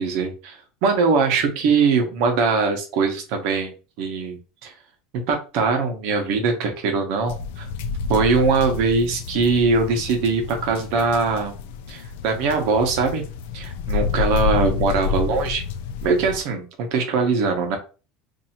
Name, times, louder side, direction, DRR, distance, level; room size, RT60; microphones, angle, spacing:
voice 1, 0.0-4.7 5.1-7.7 8.1-11.5 11.9-13.2 13.5-15.6 16.0-17.8, right 4 dB, 55° right, 4 dB, 1.0 m, -22 dB
sound 1, 7.3-16.4, left 6 dB, 75° left, 0.4 m, -29 dB
2.7 x 2.7 x 4.3 m, 0.34 s
cardioid pair, 175°, 0 cm